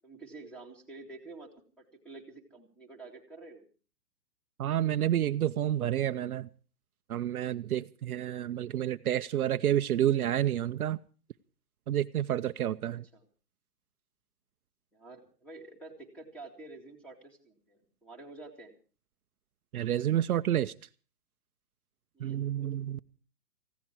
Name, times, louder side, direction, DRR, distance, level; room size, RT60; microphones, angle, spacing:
voice 1, 0.0-1.5 1.8-3.6 12.9-13.2 14.9-18.7 22.1-22.5, right 3 dB, ahead, 2.3 m, -49 dB
voice 2, 4.6-6.5 7.1-11.0 11.9-13.0 19.7-20.7 22.2-23.0, right 11 dB, 65° right, 0.8 m, -29 dB
18.5 x 16.0 x 4.5 m
hypercardioid pair, 160°, 47 cm